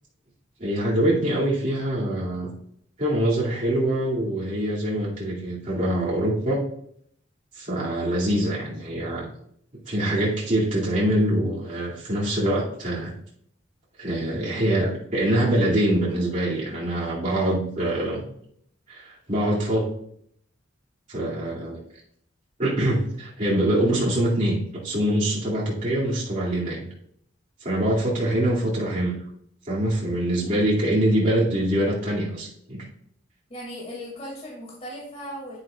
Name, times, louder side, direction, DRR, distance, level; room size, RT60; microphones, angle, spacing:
voice 1, 0.6-2.5 3.0-6.6 7.5-9.3 9.8-13.1 14.0-18.2 18.9-19.9 21.1-21.8 22.6-26.9 27.6-29.1 29.6-32.8, right 1 dB, 40° right, -7 dB, 2.5 m, -24 dB
voice 2, 33.5-35.6, equal, 35° left, -4 dB, 2.3 m, -37 dB
10.0 x 9.0 x 2.4 m, 0.68 s
head